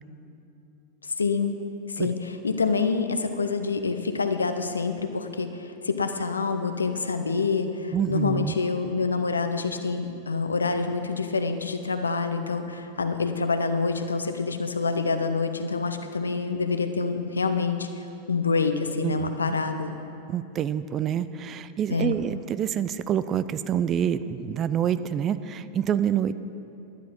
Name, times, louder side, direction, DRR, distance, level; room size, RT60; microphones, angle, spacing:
voice 1, 1.2-1.6 1.9-17.9 18.3-20.0 21.9-22.2, left 4 dB, 75° left, 8 dB, 0.7 m, -27 dB
voice 2, 7.9-8.5 19.0-19.3 20.3-26.3, right 9 dB, 30° right, 14 dB, 0.3 m, -27 dB
10.5 x 10.5 x 5.3 m, 2.7 s
figure-of-eight pair, 90°, 0 cm